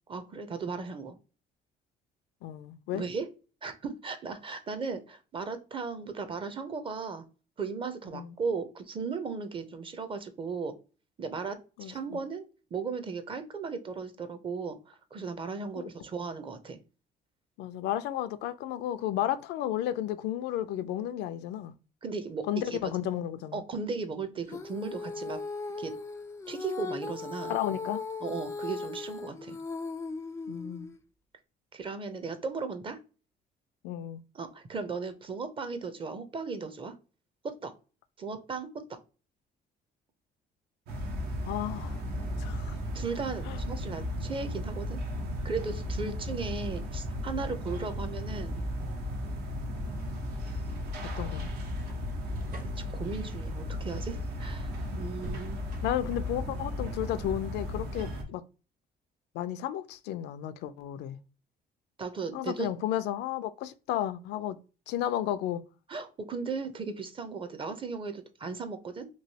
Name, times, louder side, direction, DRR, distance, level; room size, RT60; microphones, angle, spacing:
voice 1, 0.1-1.2 2.9-3.3 3.6-7.2 7.6-10.8 11.2-12.4 12.7-16.8 22.0-22.8 23.5-25.4 25.8-25.9 26.5-27.5 28.2-29.6 31.7-33.0 34.3-36.9 37.4-37.7 38.2-39.0 42.9-45.0 45.4-48.6 52.9-55.6 62.0-62.7 65.9-69.1, right 4 dB, 30° right, 0.6 m, -36 dB
voice 2, 2.4-3.0 8.1-8.4 11.8-12.2 15.8-15.9 17.6-21.7 22.5-23.6 27.5-28.0 30.5-30.9 33.8-34.2 41.4-42.0 42.4-42.7 43.4-43.6 48.8-48.9 51.2-51.5 55.8-58.4 59.3-61.2 62.3-64.6 64.9-65.6, left 12 dB, 85° left, 0.4 m, -33 dB
Female singing, 24.5-31.0, left 4 dB, 15° left, 0.3 m, -38 dB
sound 1, 40.9-58.2, equal, 75° right, 0.8 m, -35 dB
sound 2, 49.9-56.3, equal, 55° right, 1.3 m, -48 dB
3.1 x 2.6 x 2.7 m
cardioid pair, 110°, 17 cm